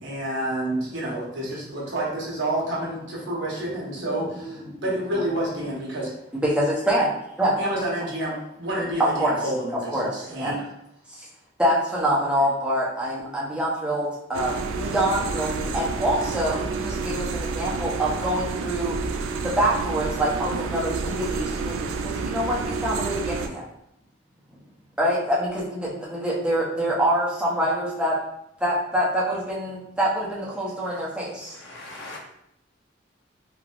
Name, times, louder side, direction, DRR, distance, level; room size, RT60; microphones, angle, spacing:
voice 1, 0.0-6.1 7.6-10.7, right 1 dB, 65° right, -4 dB, 1.0 m, -29 dB
voice 2, 4.4-4.8 6.3-7.1 7.4-7.5 9.2-9.4 9.7-10.5 11.2-11.3 11.6-18.9 19.4-23.6 25.0-28.2 28.6-31.6, equal, 5° right, -6 dB, 0.7 m, -25 dB
sound 1, 14.3-23.5, right 4 dB, 85° right, 0.3 m, -29 dB
voice 3, 31.4-32.2, left 2 dB, 75° left, -2 dB, 0.8 m, -40 dB
3.3 x 2.5 x 2.4 m, 0.80 s
head